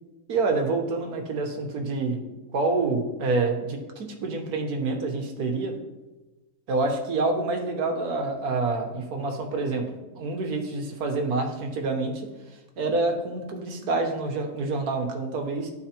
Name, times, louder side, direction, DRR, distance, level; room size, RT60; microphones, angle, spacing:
voice 1, 0.3-2.2 2.5-5.8 6.7-9.9 10.1-12.2 12.8-15.7, right 3 dB, 60° right, 3 dB, 1.4 m, -27 dB
12.0 x 4.6 x 2.9 m, 1.1 s
omnidirectional pair, 2.1 m